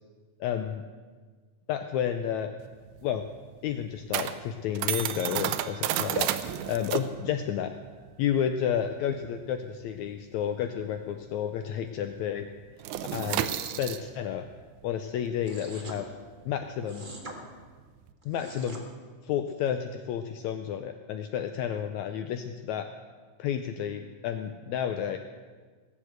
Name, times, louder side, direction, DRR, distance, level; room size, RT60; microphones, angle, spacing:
voice 1, 0.4-0.8 1.7-2.5 3.0-3.3 3.6-6.3 6.7-7.7 8.2-12.5 13.1-14.5 14.8-16.1 16.5-17.1 18.3-18.8 19.2-22.9 23.4-25.2, left 9 dB, 80° left, 7 dB, 1.7 m, -31 dB
sound 1, 2.6-11.6 11.8-12.1 12.4-18.1, right 11 dB, 75° right, 1.9 m, -33 dB
sound 2, 15.4-16.0 16.9-17.4 18.2-18.8, right 2 dB, 45° right, 0.6 m, -43 dB
18.0 x 7.3 x 7.9 m, 1.5 s
omnidirectional pair, 3.8 m